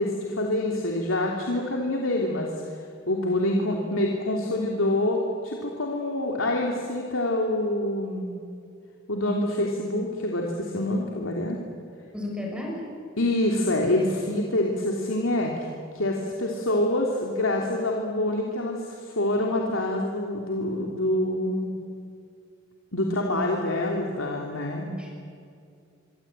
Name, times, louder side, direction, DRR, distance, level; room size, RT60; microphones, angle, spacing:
voice 1, 0.0-2.8 3.1-8.3 9.1-11.6 13.2-15.5 15.9-21.7 22.9-24.9, left 1 dB, 85° left, 0 dB, 3.3 m, -26 dB
voice 2, 12.1-12.8 25.0-25.1, left 1 dB, 5° right, -1 dB, 6.8 m, -33 dB
25.5 x 25.0 x 9.2 m, 2.4 s
head